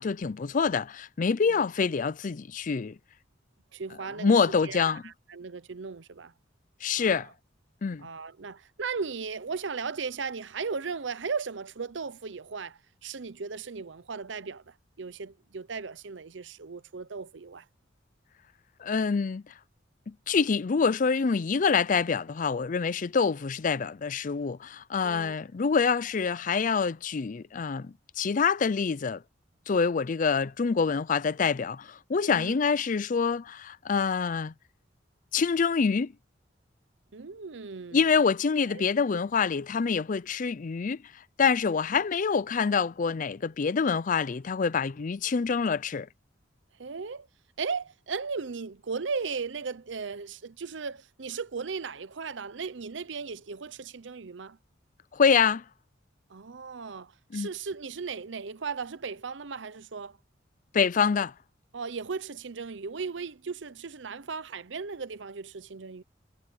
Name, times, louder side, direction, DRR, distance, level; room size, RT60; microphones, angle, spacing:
voice 1, 0.0-3.0 4.2-5.0 6.8-7.3 7.8-8.1 18.8-19.5 20.1-29.2 29.7-34.5 35.3-36.1 37.9-41.0 41.4-46.1 55.1-55.6 57.3-57.5 60.7-61.3, left 5 dB, 45° left, 0.4 m, -26 dB
voice 2, 3.7-6.3 7.0-7.3 8.0-17.6 25.0-25.4 32.2-32.6 37.1-38.0 38.7-38.8 46.8-47.3 47.6-54.6 56.3-60.2 61.7-66.0, right 5 dB, 80° right, 0.8 m, -36 dB
head